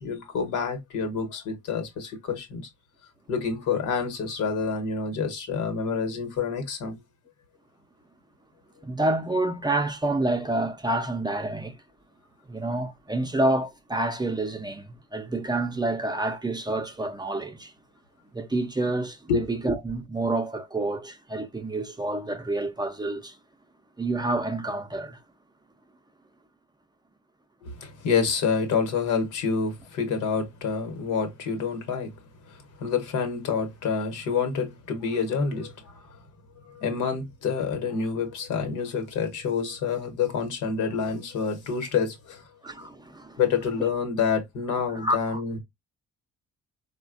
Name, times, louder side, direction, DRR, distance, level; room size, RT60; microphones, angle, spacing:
voice 1, 0.0-2.7 3.3-7.0 19.3-19.4 27.6-32.1 32.5-36.2 36.6-42.4 43.4-45.6, left 5 dB, 80° left, 1.0 m, -28 dB
voice 2, 8.8-11.8 12.5-17.7 18.3-23.4 24.0-25.2 42.6-43.4 43.8-43.9 44.9-45.4, right 2 dB, 15° right, 0.5 m, -28 dB
4.0 x 2.2 x 2.4 m
cardioid pair, 90°, 30 cm